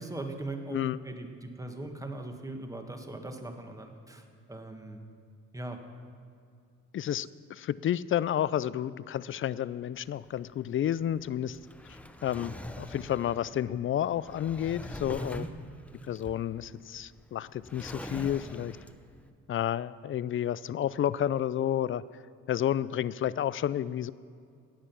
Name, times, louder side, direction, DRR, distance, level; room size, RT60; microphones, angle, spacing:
voice 1, 0.0-0.8 1.0-5.0 5.5-5.8 15.2-15.5, right 2 dB, 10° right, 5 dB, 1.4 m, -40 dB
voice 2, 6.9-11.6 12.2-15.4 16.1-18.8 19.5-22.0 22.5-24.1, left 10 dB, 45° left, 18 dB, 0.4 m, -31 dB
Drawer open or close, 9.9-19.2, left 1 dB, 5° left, 0.7 m, -45 dB
18.0 x 7.5 x 5.9 m, 2.4 s
cardioid pair, 90°, 30 cm